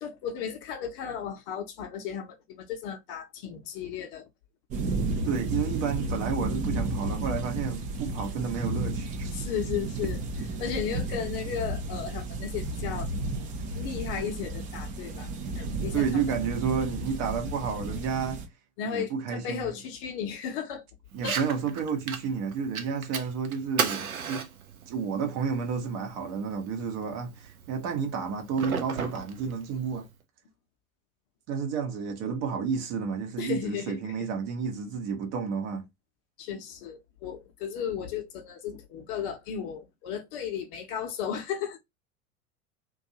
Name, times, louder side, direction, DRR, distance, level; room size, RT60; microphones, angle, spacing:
voice 1, 0.0-4.2 9.3-10.2 10.6-13.1 13.7-15.3 15.5-16.4 18.8-20.8 21.2-21.4 33.4-34.1 36.4-41.8, left 8 dB, 40° left, 0.7 m, -35 dB
sound 1, 4.7-18.5, right 2 dB, 20° right, 0.4 m, -33 dB
voice 2, 5.2-9.4 15.9-18.4 18.8-19.8 21.1-24.5 24.9-30.1 31.5-35.8, right 6 dB, 40° right, 0.9 m, -31 dB
Fire, 21.1-30.1, right 6 dB, 80° right, 0.6 m, -37 dB
2.5 x 2.3 x 2.8 m
figure-of-eight pair, 85°, 42 cm